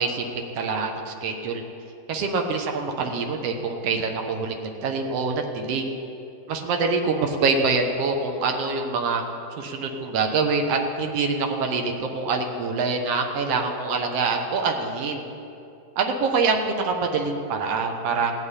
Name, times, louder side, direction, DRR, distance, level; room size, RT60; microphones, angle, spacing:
voice 1, 0.0-1.6 2.1-5.8 6.5-9.2 9.6-15.2 16.0-18.3, right 4 dB, 70° right, 3 dB, 1.5 m, -25 dB
16.0 x 7.3 x 9.8 m, 2.7 s
omnidirectional pair, 4.3 m